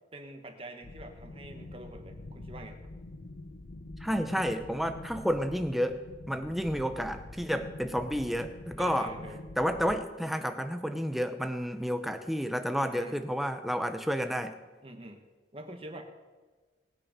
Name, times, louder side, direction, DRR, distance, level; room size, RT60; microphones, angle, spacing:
voice 1, 0.1-2.8 8.8-9.4 12.8-13.2 14.8-15.2 15.5-16.0, right 1 dB, 30° right, 4 dB, 1.5 m, -45 dB
sound 1, 0.8-10.0, left 2 dB, 85° left, 1.0 m, -45 dB
voice 2, 4.0-6.0 6.3-9.1 9.6-14.5, equal, ahead, 7 dB, 0.7 m, -30 dB
19.5 x 9.3 x 5.2 m, 1.3 s
head